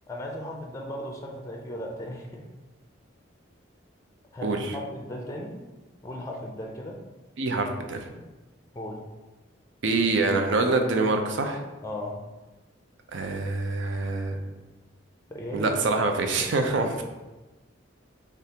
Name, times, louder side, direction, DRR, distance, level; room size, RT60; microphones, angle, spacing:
voice 1, 0.1-2.5 4.3-5.6 6.0-7.0 8.7-9.0 11.8-12.2 15.3-16.0, left 1 dB, 15° left, 0 dB, 0.4 m, -36 dB
voice 2, 4.4-4.7 7.4-8.1 9.8-11.6 13.1-14.4 15.5-17.0, right 3 dB, 70° right, 4 dB, 0.5 m, -25 dB
6.7 x 2.4 x 2.8 m, 1.1 s
head